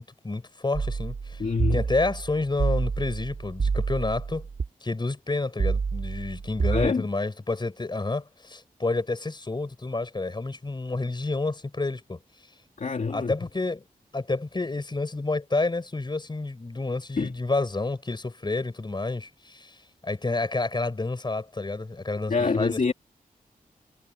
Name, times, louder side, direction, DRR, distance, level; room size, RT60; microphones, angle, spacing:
voice 1, 0.0-1.4 1.7-4.5 4.8-12.2 13.1-13.8 14.1-19.8 20.0-22.9, left 3 dB, 30° left, 4.8 m, -29 dB
sound 1, 0.7-4.7 5.6-6.9, right 5 dB, 65° right, 3.5 m, -28 dB
voice 2, 1.4-1.8 6.7-7.1 12.8-13.3 17.2-17.3 22.3-22.9, left 4 dB, 55° left, 2.5 m, -26 dB
wide cardioid pair, 90°, 15 cm